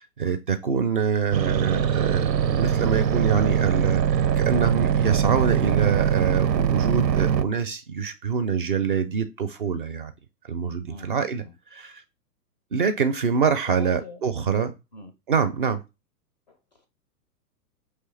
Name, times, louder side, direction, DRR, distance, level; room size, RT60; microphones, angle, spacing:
voice 1, 0.0-10.1 10.4-11.4 11.7-12.0 12.7-14.7 15.3-15.8, right 6 dB, 35° right, 0.4 m, -25 dB
sound 1, 1.3-7.4, right 8 dB, 90° right, 0.6 m, -22 dB
voice 2, 13.7-14.2 14.9-15.1 16.5-16.9, left 3 dB, 30° left, 0.4 m, -42 dB
4.9 x 3.2 x 3.1 m
figure-of-eight pair, 110°, 49 cm